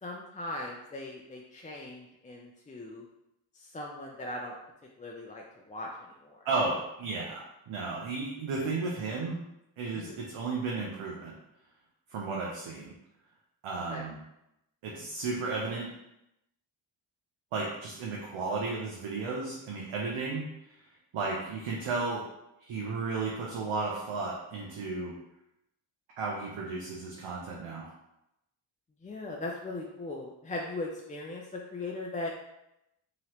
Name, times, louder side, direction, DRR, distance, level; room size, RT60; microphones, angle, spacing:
voice 1, 0.0-3.0 3.6-4.6 5.0-6.4 9.9-10.2 13.9-14.1 29.0-32.3, left 2 dB, 15° left, -1 dB, 0.4 m, -39 dB
voice 2, 6.5-9.4 9.8-11.3 12.1-12.9 13.6-14.2 14.8-15.9 17.5-20.5 21.1-22.2 22.7-25.1 26.2-27.9, right 3 dB, 85° right, -3 dB, 0.7 m, -33 dB
3.0 x 2.9 x 2.9 m, 0.86 s
cardioid pair, 50°, 47 cm